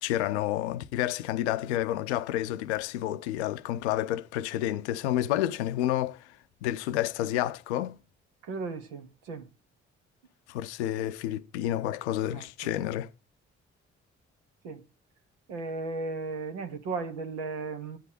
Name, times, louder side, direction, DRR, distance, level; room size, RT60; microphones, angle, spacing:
voice 1, 0.0-6.3 6.6-8.0 10.5-13.1, left 13 dB, 90° left, 0.5 m, -30 dB
voice 2, 8.4-9.5 12.3-12.4 14.6-14.8 15.5-18.0, right 3 dB, 85° right, 1.2 m, -35 dB
11.0 x 8.3 x 4.2 m
hypercardioid pair, 40°, 33 cm